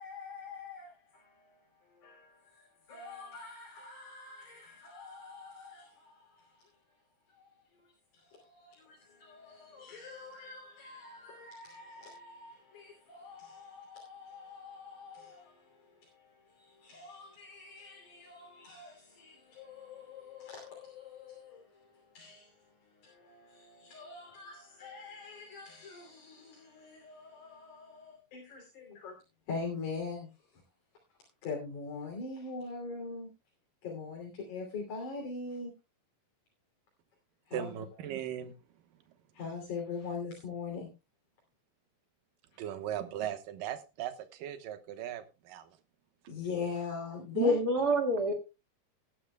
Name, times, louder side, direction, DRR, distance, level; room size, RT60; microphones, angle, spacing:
voice 1, 0.0-7.0 7.3-29.2 29.5-30.6 31.1-33.3 33.8-35.7 37.5-37.9 39.3-40.9 46.3-47.6, left 4 dB, 65° left, 4.4 m, -43 dB
voice 2, 37.5-38.5 42.6-45.7, right 10 dB, 90° right, 2.8 m, -38 dB
voice 3, 47.4-48.3, equal, 35° right, 2.0 m, -26 dB
18.5 x 11.0 x 2.3 m
omnidirectional pair, 3.8 m